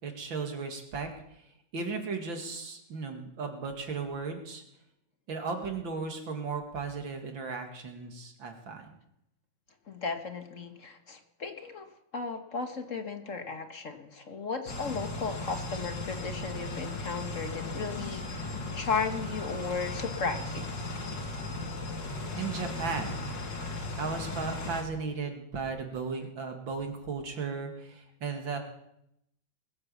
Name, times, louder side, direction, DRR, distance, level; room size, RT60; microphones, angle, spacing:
voice 1, 0.0-1.1 1.7-4.6 5.3-8.9 22.4-23.2 24.0-28.6, right 4 dB, 85° right, 4 dB, 3.0 m, -35 dB
voice 2, 9.9-11.9 12.1-20.6, left 5 dB, 45° left, 7 dB, 1.5 m, -35 dB
sound 1, 14.7-24.8, left 2 dB, 70° left, 2.7 m, -36 dB
21.0 x 9.6 x 7.1 m, 0.78 s
omnidirectional pair, 2.0 m